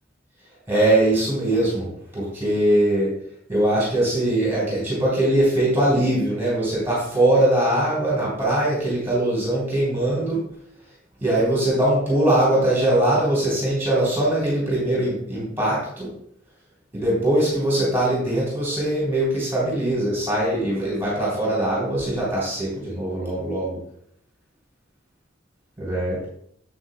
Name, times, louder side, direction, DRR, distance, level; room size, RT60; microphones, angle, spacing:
voice 1, 0.7-1.9 2.1-3.1 3.5-10.4 11.2-16.1 16.9-23.8 25.8-26.2, right 1 dB, 15° right, -6 dB, 3.5 m, -21 dB
9.6 x 7.9 x 2.2 m, 0.68 s
head